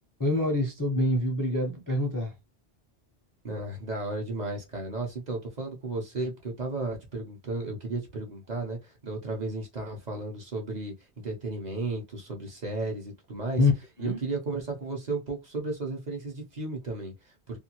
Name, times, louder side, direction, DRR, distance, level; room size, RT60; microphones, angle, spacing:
voice 1, 0.2-2.3 13.6-13.7 14.0-14.2, left 2 dB, 25° left, 0.5 m, -25 dB
voice 2, 3.4-10.9 11.2-13.6 14.0-17.6, right 2 dB, 45° right, 0.8 m, -34 dB
2.5 x 2.3 x 2.8 m
omnidirectional pair, 1.1 m